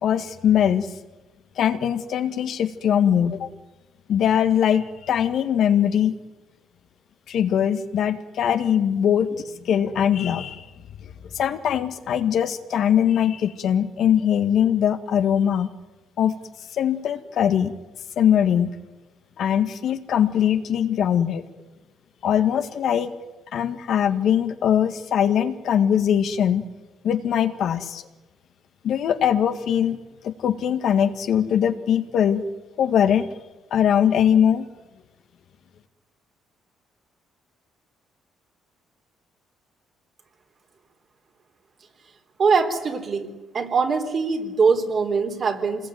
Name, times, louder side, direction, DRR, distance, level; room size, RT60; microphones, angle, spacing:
voice 1, 0.0-0.9 1.6-3.5 4.1-6.1 7.3-10.7 11.3-15.7 16.2-16.3 16.8-17.7 18.2-18.7 19.4-21.4 22.2-23.1 23.5-26.7 27.0-28.0 28.8-30.0 30.2-32.4 32.8-33.3 33.7-34.7, left 9 dB, 65° left, 8 dB, 1.9 m, -21 dB
voice 2, 42.4-43.3 43.5-45.9, right 5 dB, 45° right, 4 dB, 3.8 m, -22 dB
26.5 x 20.5 x 9.5 m, 1.1 s
cardioid pair, 95°, 0 cm